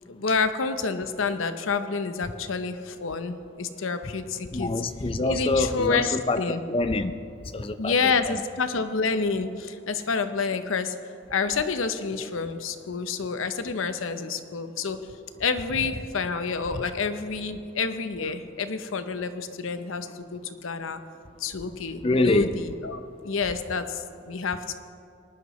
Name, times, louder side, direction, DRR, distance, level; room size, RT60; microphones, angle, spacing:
voice 1, 0.1-4.7 5.2-6.6 7.8-10.9 11.3-15.0 15.4-21.0 21.4-24.7, left 5 dB, 90° left, 10 dB, 0.7 m, -28 dB
voice 2, 4.4-7.1 7.5-8.1 16.7-16.8 22.0-22.5, left 2 dB, 25° left, 10 dB, 0.4 m, -26 dB
19.5 x 11.0 x 3.1 m, 2.5 s
head